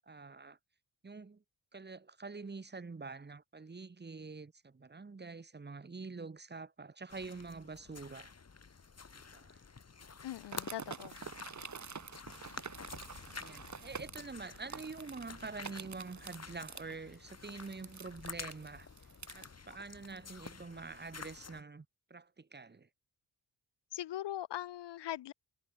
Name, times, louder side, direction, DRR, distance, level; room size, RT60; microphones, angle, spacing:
voice 1, 0.1-0.6 1.0-1.4 1.7-8.3 9.3-9.6 13.3-18.9 19.3-21.8 22.1-22.9, right 4 dB, 25° right, 1.4 m, -46 dB
sound 1, 7.1-21.6, left 5 dB, 35° left, 2.9 m, -50 dB
voice 2, 10.2-11.2 23.9-25.3, left 13 dB, 70° left, 0.7 m, -41 dB
sound 2, 10.4-19.5, right 5 dB, 40° right, 3.2 m, -48 dB
wide cardioid pair, 115°, 43 cm